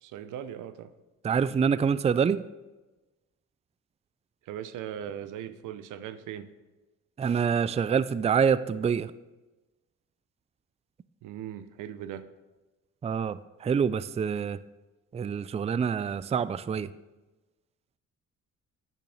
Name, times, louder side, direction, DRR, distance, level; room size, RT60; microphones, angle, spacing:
voice 1, 0.0-0.9 4.4-6.5 11.2-12.3, right 10 dB, 90° right, 13 dB, 0.8 m, -39 dB
voice 2, 1.2-2.4 7.2-9.1 13.0-14.6 15.1-16.9, right 6 dB, 20° right, 16 dB, 0.4 m, -26 dB
9.1 x 8.5 x 6.5 m, 1.1 s
cardioid pair, 90°, 30 cm